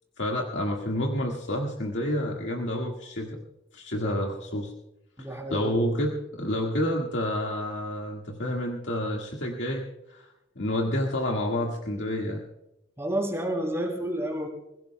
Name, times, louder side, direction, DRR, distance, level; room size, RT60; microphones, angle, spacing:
voice 1, 0.2-3.4 3.7-4.7 5.2-10.3 10.6-12.4, left 1 dB, 80° left, 0 dB, 1.8 m, -29 dB
voice 2, 5.2-5.8 13.0-14.5, right 1 dB, 15° right, 2 dB, 2.9 m, -30 dB
27.0 x 16.0 x 2.2 m, 0.91 s
head